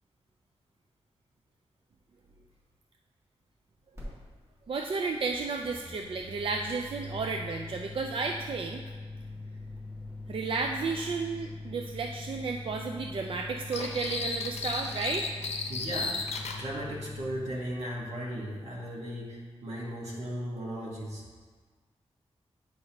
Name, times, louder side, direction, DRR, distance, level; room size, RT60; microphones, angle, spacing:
sound 1, 4.0-4.1 4.3-17.4, left 2 dB, 25° right, 1.9 m, -43 dB
voice 1, 4.7-8.8 10.3-15.3, right 4 dB, 55° right, 2 dB, 0.3 m, -32 dB
sound 2, 13.7-16.6, left 4 dB, 80° left, 0.6 m, -34 dB
voice 2, 15.7-21.2, equal, 80° right, -4 dB, 1.4 m, -37 dB
9.0 x 5.3 x 2.9 m, 1.5 s
wide cardioid pair, 155°, 11 cm